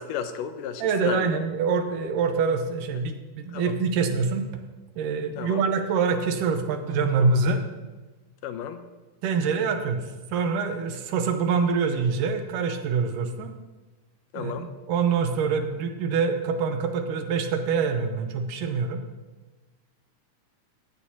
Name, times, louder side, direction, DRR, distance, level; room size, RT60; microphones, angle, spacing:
voice 1, 0.0-1.4 3.5-3.7 5.4-5.6 8.4-8.8 14.3-14.7, left 8 dB, 90° left, 9 dB, 2.4 m, -33 dB
voice 2, 0.8-4.5 5.0-7.6 9.2-13.5 14.4-19.0, right 5 dB, 90° right, 6 dB, 2.5 m, -25 dB
15.0 x 9.9 x 2.9 m, 1.2 s
omnidirectional pair, 3.7 m